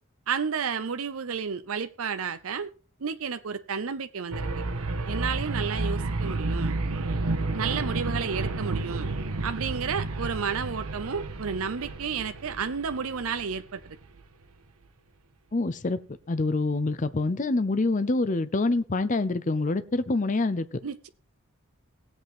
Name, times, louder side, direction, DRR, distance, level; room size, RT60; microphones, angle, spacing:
voice 1, 0.3-2.7 3.0-4.5 5.1-6.8 7.5-9.1 9.4-13.8 20.8-21.1, right 6 dB, 70° right, 10 dB, 0.6 m, -31 dB
sound 1, 4.3-14.2, right 2 dB, 85° right, 1.3 m, -31 dB
voice 2, 15.5-16.0 16.3-20.8, left 2 dB, 35° left, 12 dB, 0.6 m, -26 dB
18.5 x 8.0 x 3.6 m, 0.36 s
head